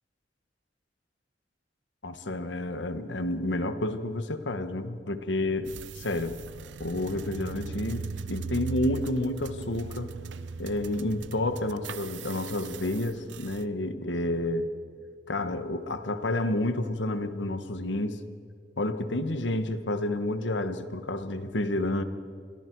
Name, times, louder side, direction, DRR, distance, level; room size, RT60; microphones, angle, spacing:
voice 1, 2.0-6.4 6.8-10.1 10.6-14.7 15.3-18.2 18.8-22.0, left 1 dB, 80° left, 10 dB, 1.4 m, -30 dB
sound 1, 5.7-13.6, right 5 dB, 85° right, 0.7 m, -39 dB
29.0 x 23.0 x 4.7 m, 2.2 s
head